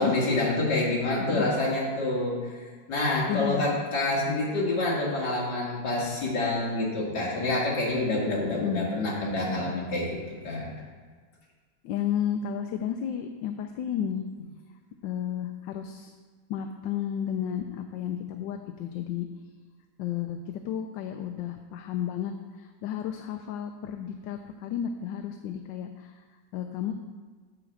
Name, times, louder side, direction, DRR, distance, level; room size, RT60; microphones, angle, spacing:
voice 1, 0.0-2.4 2.9-10.1 10.4-10.8, left 2 dB, 65° left, -4 dB, 2.5 m, -27 dB
voice 2, 1.2-1.5 3.3-3.7 8.5-8.9 11.8-14.2 15.0-16.1 16.5-19.3 20.0-26.2 26.5-27.0, left 9 dB, 80° left, 6 dB, 1.2 m, -32 dB
7.1 x 4.9 x 7.0 m, 1.5 s
omnidirectional pair, 2.0 m